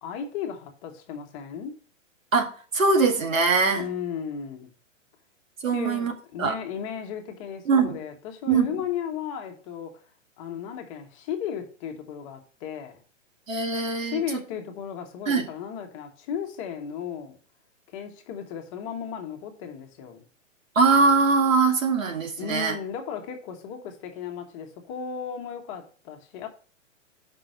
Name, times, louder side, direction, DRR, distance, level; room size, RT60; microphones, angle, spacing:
voice 1, 0.0-1.8 3.7-4.7 5.7-10.0 10.4-13.0 14.0-17.4 17.9-20.2 22.4-26.5, left 8 dB, 25° left, 1.1 m, -35 dB
voice 2, 2.3-3.9 5.6-6.1 6.4-6.5 7.7-8.0 8.5-8.7 13.5-14.2 15.3-15.5 20.8-22.8, right 4 dB, 90° right, 2.0 m, -22 dB
5.8 x 5.4 x 6.5 m
hypercardioid pair, 150°, 39 cm